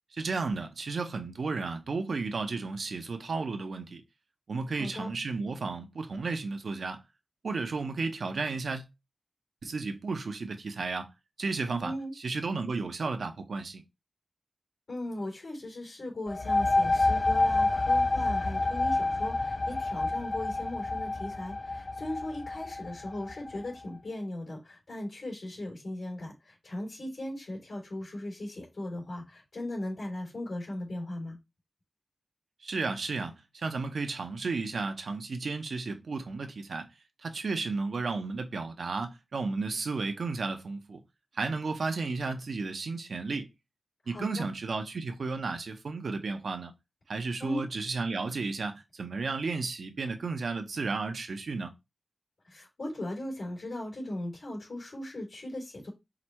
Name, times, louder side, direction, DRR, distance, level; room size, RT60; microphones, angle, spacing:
voice 1, 0.1-4.0 4.5-7.0 7.4-8.9 9.6-11.1 11.4-13.8 32.6-36.9 37.2-41.0 41.3-43.5 44.1-46.7 47.1-51.7, right 4 dB, 85° right, 0.7 m, -33 dB
voice 2, 4.7-5.1 11.8-12.1 14.9-31.4 44.0-44.5 47.4-47.6 52.4-55.9, left 1 dB, 85° left, 3.0 m, -38 dB
sound 1, 16.3-23.7, left 2 dB, 45° left, 0.4 m, -28 dB
4.8 x 2.1 x 4.4 m
wide cardioid pair, 70°, 0 cm